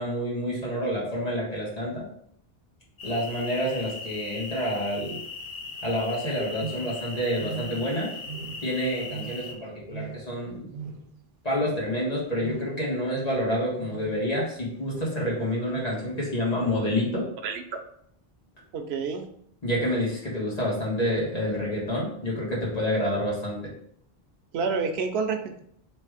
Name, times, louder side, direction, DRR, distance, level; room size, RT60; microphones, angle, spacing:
voice 1, 0.0-2.1 3.0-5.2 5.8-8.1 8.6-10.7 11.4-17.3 19.6-23.6, equal, 40° left, -6 dB, 1.7 m, -28 dB
sound 1, 3.0-9.5, left 4 dB, 55° left, 1.0 m, -39 dB
sound 2, 6.6-7.1 7.4-8.0 8.2-8.8 9.1-9.6 9.9-10.4 10.7-11.2 11.5-11.9 12.4-12.8 13.7-14.3 14.8-15.2 15.7-16.0 16.6-16.9, right 6 dB, 60° right, 0.7 m, -40 dB
voice 2, 18.7-19.2 24.5-25.6, right 5 dB, 90° right, 6 dB, 0.9 m, -28 dB
3.3 x 3.2 x 4.8 m, 0.68 s
omnidirectional pair, 1.0 m